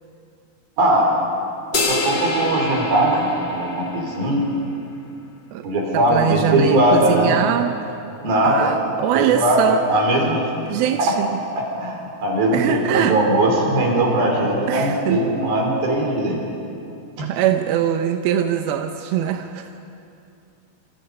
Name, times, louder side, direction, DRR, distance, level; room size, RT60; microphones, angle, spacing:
voice 1, 0.8-1.1 1.7-4.4 5.6-7.3 8.2-8.7 9.1-9.6 9.9-10.4 11.6-16.4, right 1 dB, 60° right, -1 dB, 6.2 m, -19 dB
sound 1, 1.7-4.3, left 3 dB, 50° left, 1.2 m, -26 dB
voice 2, 5.9-7.8 8.4-9.9 10.7-11.4 12.5-13.2 14.7-15.2 17.2-19.9, right 10 dB, 75° right, 6 dB, 2.4 m, -22 dB
27.0 x 27.0 x 5.5 m, 2.7 s
omnidirectional pair, 4.9 m